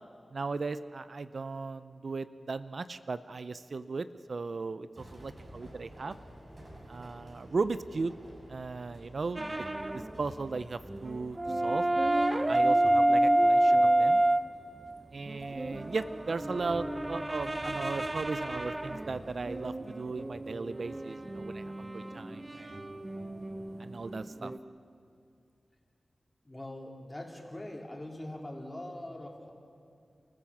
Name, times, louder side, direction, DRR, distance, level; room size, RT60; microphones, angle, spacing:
voice 1, 0.3-6.1 6.9-8.1 8.5-9.4 9.9-11.4 11.6-11.9 12.5-14.2 15.1-22.8 23.8-24.5, right 4 dB, 65° right, 13 dB, 0.6 m, -36 dB
sound 1, 4.9-19.6, equal, 45° right, 6.7 m, -52 dB
sound 2, 9.4-10.2 10.5-10.6 10.9-14.4 15.3-24.6, right 1 dB, 25° right, 0.9 m, -29 dB
voice 2, 26.4-29.5, left 1 dB, 20° left, 0 dB, 3.7 m, -42 dB
30.0 x 14.5 x 7.3 m, 2.4 s
wide cardioid pair, 65°, 0 cm